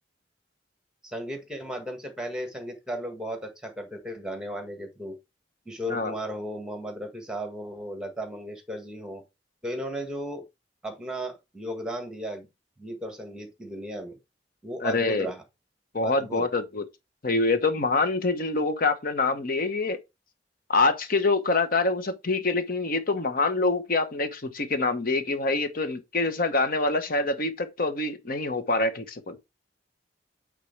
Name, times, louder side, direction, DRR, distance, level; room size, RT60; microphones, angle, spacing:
voice 1, 1.0-5.2 5.6-9.2 9.6-10.4 10.8-12.5 12.8-14.2 14.6-15.4 16.0-16.5, equal, 5° right, 1.5 m, -35 dB
voice 2, 14.8-15.3 15.9-16.8 17.2-20.0 20.7-29.4, left 3 dB, 55° left, 1.0 m, -25 dB
8.1 x 3.8 x 3.3 m
head